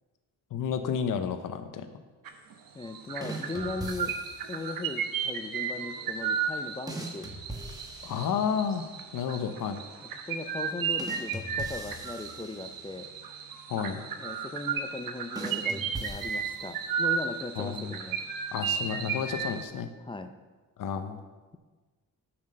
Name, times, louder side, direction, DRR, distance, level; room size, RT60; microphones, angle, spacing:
voice 1, 0.5-1.9 8.0-9.8 13.7-14.1 17.6-18.0 18.5-19.9 20.8-21.2, left 7 dB, 65° left, 8 dB, 0.7 m, -31 dB
sound 1, 2.3-2.5 2.8-19.6, right 6 dB, 80° right, 1.0 m, -34 dB
voice 2, 2.7-4.1 4.5-7.3 10.0-13.1 14.2-18.2 20.0-20.3, left 3 dB, 15° left, 8 dB, 0.4 m, -38 dB
sound 2, 3.2-4.6 6.9-8.8 11.0-13.1 15.4-17.0, right 1 dB, 10° right, 1.1 m, -41 dB
7.4 x 6.0 x 6.4 m, 1.3 s
wide cardioid pair, 145°, 34 cm